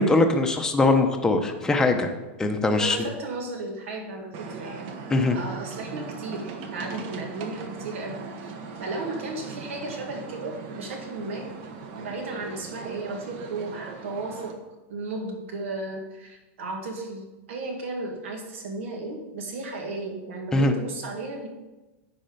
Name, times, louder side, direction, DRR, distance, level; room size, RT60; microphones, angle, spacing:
voice 1, 0.0-2.1 2.4-3.0 5.1-5.4 20.5-20.7, left 2 dB, 10° left, 4 dB, 0.7 m, -21 dB
voice 2, 2.6-4.9 5.3-11.5 12.0-14.6 14.9-21.5, right 2 dB, 80° right, 2 dB, 1.9 m, -35 dB
sound 1, 4.3-14.5, right 4 dB, 50° right, 1.1 m, -39 dB
10.0 x 4.4 x 5.2 m, 1.1 s
supercardioid pair, 150°, 7 cm